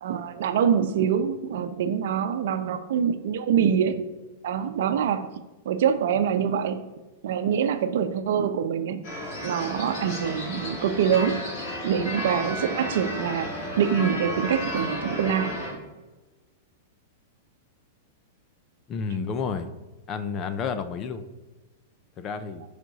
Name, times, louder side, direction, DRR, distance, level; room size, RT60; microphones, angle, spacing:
voice 1, 0.0-4.0 4.4-5.3 5.6-6.8 7.2-9.0 9.4-11.5 11.8-13.5 13.8-15.6, right 8 dB, 65° right, 9 dB, 0.7 m, -25 dB
sound 1, 9.0-15.7, equal, 45° left, 3.1 m, -33 dB
voice 2, 18.9-19.7 20.1-21.2 22.2-22.6, left 5 dB, 25° left, 10 dB, 0.5 m, -30 dB
11.0 x 5.1 x 4.1 m, 1.2 s
supercardioid pair, 165°, 0 cm